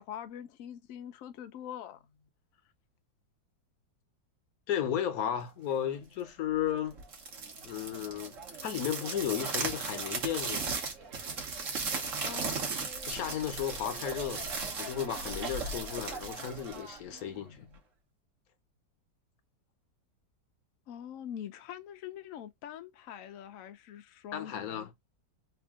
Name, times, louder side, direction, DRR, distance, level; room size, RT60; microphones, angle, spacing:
voice 1, 0.0-2.0 12.2-12.6 17.4-17.8 20.9-24.9, left 10 dB, 80° left, 0.7 m, -44 dB
voice 2, 4.7-7.0 7.6-10.7 13.1-14.5 14.8-17.7 24.3-24.9, left 10 dB, 60° left, 1.1 m, -34 dB
sound 1, 7.0-17.3, right 4 dB, 50° right, 1.2 m, -37 dB
3.5 x 2.6 x 3.5 m
omnidirectional pair, 2.0 m